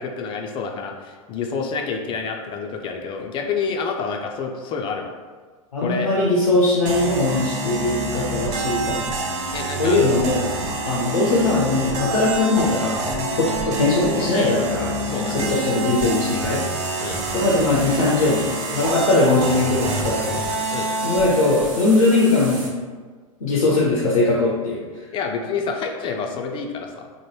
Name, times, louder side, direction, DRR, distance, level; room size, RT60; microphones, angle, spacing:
voice 1, 0.0-5.1 5.8-6.1 9.5-10.0 10.4-10.6 15.0-15.5 17.0-17.2 20.7-20.9 25.1-27.2, left 5 dB, 30° left, 2 dB, 0.4 m, -28 dB
voice 2, 5.7-9.1 9.8-10.5 10.8-16.6 17.3-20.4 21.0-22.7 23.4-24.8, left 2 dB, 85° left, -4 dB, 0.6 m, -20 dB
sound 1, 6.8-21.7, right 2 dB, 40° right, 0.6 m, -27 dB
sound 2, 15.4-22.7, right 2 dB, 60° right, 0.8 m, -36 dB
2.9 x 2.1 x 3.1 m, 1.5 s
hypercardioid pair, 95°, 18 cm